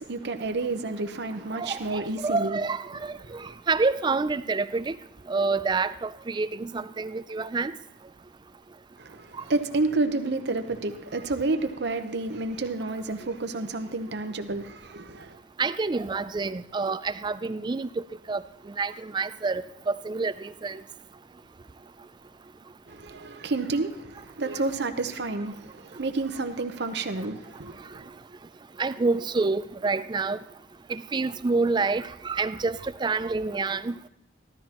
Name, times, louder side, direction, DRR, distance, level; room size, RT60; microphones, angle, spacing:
voice 1, 0.0-2.6 3.2-3.6 9.0-15.4 22.9-28.1, right 3 dB, 60° right, 0.8 m, -30 dB
voice 2, 1.5-5.0 5.3-7.7 15.6-20.8 28.8-30.4 30.9-33.9, right 4 dB, 25° right, 0.3 m, -28 dB
15.0 x 12.5 x 3.0 m
head